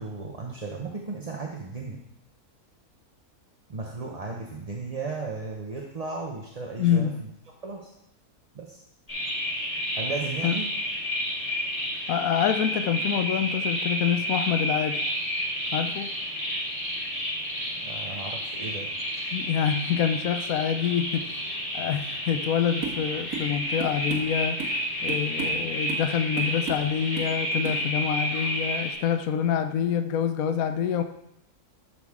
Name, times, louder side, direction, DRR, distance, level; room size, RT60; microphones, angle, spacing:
voice 1, 0.0-2.0 3.7-7.3 7.6-7.9 8.5-8.8 9.9-10.7 17.8-18.9, right 3 dB, 30° right, 0 dB, 0.7 m, -35 dB
voice 2, 6.8-7.2 10.4-10.6 12.1-15.1 15.7-16.1 19.3-24.6 25.0-31.0, left 8 dB, 70° left, 7 dB, 1.1 m, -26 dB
sound 1, 9.1-28.9, equal, 20° left, 4.5 m, -30 dB
sound 2, 22.8-23.0 23.3-23.5 23.8-24.8 25.1-25.6 25.9-26.1 26.4-26.9 27.2-27.4 27.6-27.8, right 5 dB, 70° right, 1.9 m, -34 dB
12.5 x 6.6 x 3.6 m, 0.80 s
omnidirectional pair, 1.6 m